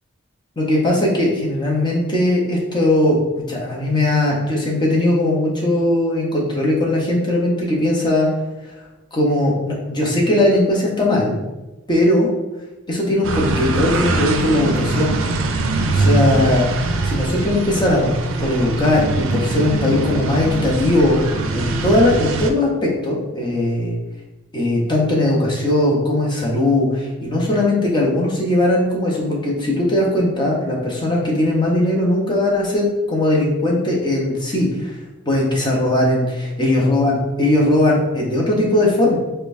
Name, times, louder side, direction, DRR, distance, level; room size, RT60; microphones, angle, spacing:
voice 1, 0.6-8.3 9.1-11.4 11.9-12.3 12.9-15.2 15.9-16.7 17.0-18.1 18.4-24.0 24.5-34.9 35.3-39.2, left 1 dB, 25° left, -3 dB, 0.8 m, -19 dB
sound 1, 13.2-22.5, right 2 dB, 70° right, 0.4 m, -22 dB
5.1 x 2.2 x 2.6 m, 1.1 s
head